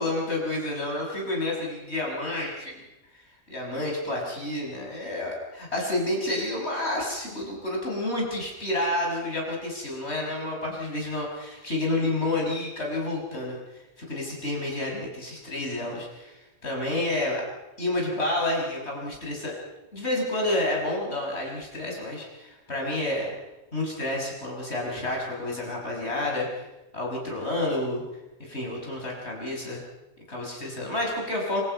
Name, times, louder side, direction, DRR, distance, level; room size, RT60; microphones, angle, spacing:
voice 1, 0.0-2.8 3.1-13.6 14.0-17.4 17.8-19.6 19.9-23.3 23.7-26.6 26.9-28.0 28.4-29.8 30.3-31.6, left 1 dB, 50° left, -1 dB, 6.4 m, -29 dB
26.5 x 25.5 x 5.5 m, 1.0 s
omnidirectional pair, 1.5 m